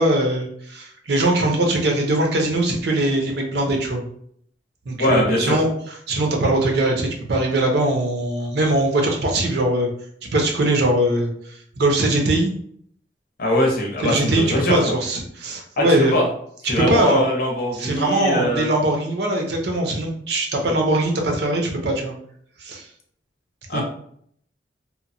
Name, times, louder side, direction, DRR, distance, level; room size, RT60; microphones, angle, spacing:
voice 1, 0.0-4.0 4.9-5.7 6.1-9.9 10.3-12.5 14.0-16.1 16.8-17.2 17.7-22.1 22.6-22.9 23.7-23.8, right 1 dB, 65° right, 1 dB, 0.6 m, -21 dB
voice 2, 5.0-5.6 13.4-14.8 15.8-16.3 16.7-18.7 20.7-20.8 23.7-23.8, left 1 dB, 55° left, 0 dB, 0.7 m, -21 dB
2.8 x 2.1 x 2.5 m, 0.65 s
head